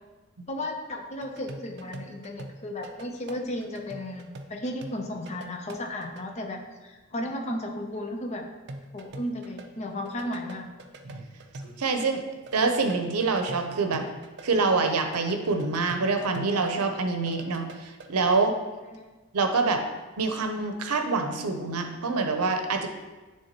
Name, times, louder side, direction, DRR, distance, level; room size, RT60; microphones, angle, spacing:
voice 1, 0.5-8.4 8.9-10.7 18.9-19.1, left 1 dB, 30° left, 3 dB, 0.6 m, -34 dB
sound 1, 1.2-6.2 8.7-12.1 12.3-16.9 17.1-18.2, right 2 dB, 50° right, 0.5 m, -44 dB
voice 2, 11.6-12.2 12.5-14.0 14.4-18.5 19.3-19.8 20.2-22.9, right 4 dB, 85° right, 5 dB, 0.7 m, -26 dB
9.4 x 3.5 x 2.9 m, 1.2 s
head